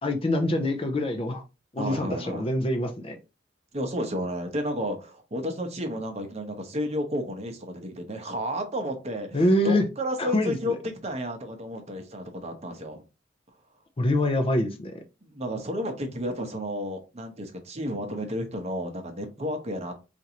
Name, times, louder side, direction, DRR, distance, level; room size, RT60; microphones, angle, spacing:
voice 1, 0.0-1.4 1.7-3.2 9.3-9.9 10.2-10.8 14.0-14.9, left 1 dB, 30° left, 0.5 m, -25 dB
voice 2, 1.8-2.4 3.7-13.0 15.2-19.9, equal, 35° right, 0.8 m, -32 dB
4.4 x 2.5 x 2.8 m
head